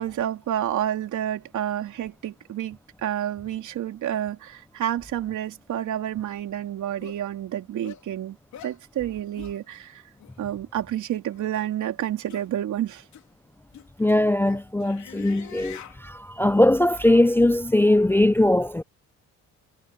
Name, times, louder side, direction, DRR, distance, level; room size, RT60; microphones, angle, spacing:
voice 1, 0.0-8.4 8.6-10.0 10.4-13.0, right 11 dB, 75° right, 3.4 m, -29 dB
sound 1, 6.3-6.4 7.0-7.2 7.8-8.0 8.5-8.8 9.4-9.6 10.2-10.3 11.3-11.6 12.3-12.5 13.1-13.2 13.7-16.0, left 9 dB, 70° left, 3.5 m, -44 dB
voice 2, 14.0-18.8, left 1 dB, 10° left, 0.4 m, -20 dB
cardioid pair, 90°, 30 cm